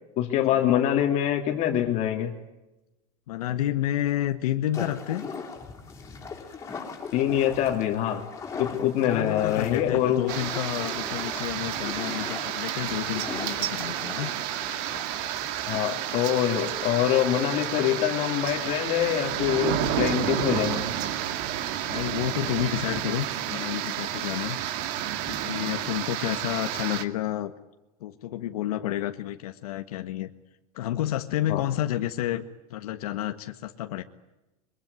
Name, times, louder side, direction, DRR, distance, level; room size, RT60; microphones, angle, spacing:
voice 1, 0.2-2.3 7.1-8.3 8.6-10.2 15.6-20.9 31.5-31.6, left 11 dB, 40° left, 3 dB, 2.7 m, -25 dB
voice 2, 3.3-5.2 9.0-14.3 21.9-24.6 25.3-27.5 28.0-30.3 30.7-32.4 32.7-34.0, left 13 dB, 90° left, 6 dB, 1.6 m, -30 dB
sound 1, 4.7-15.7, left 5 dB, 15° left, 5.3 m, -39 dB
sound 2, 10.3-27.0, right 11 dB, 50° right, 2.1 m, -30 dB
24.0 x 23.5 x 9.6 m, 1.0 s
supercardioid pair, 160°, 19 cm